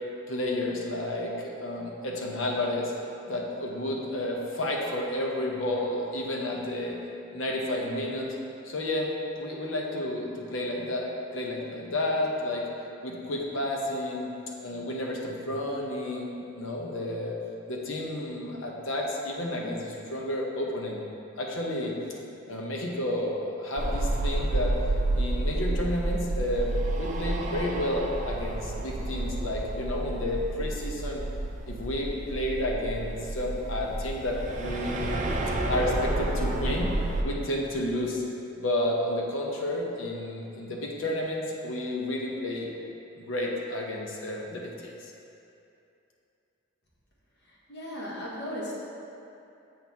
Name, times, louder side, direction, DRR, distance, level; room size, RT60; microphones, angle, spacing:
voice 1, 0.3-2.9 3.3-7.0 7.3-8.3 8.6-9.1 9.4-12.7 13.0-14.3 14.6-17.3 17.7-21.0 21.4-22.0 22.5-24.7 25.1-31.2 31.7-35.2 35.7-36.9 37.2-38.2 38.5-42.7 43.2-45.1, left 1 dB, 75° left, -1 dB, 0.9 m, -31 dB
sound 1, 23.8-37.2, right 2 dB, 40° right, 0.5 m, -30 dB
voice 2, 47.4-48.8, equal, 55° left, -6 dB, 1.3 m, -36 dB
7.6 x 4.4 x 3.5 m, 2.8 s
head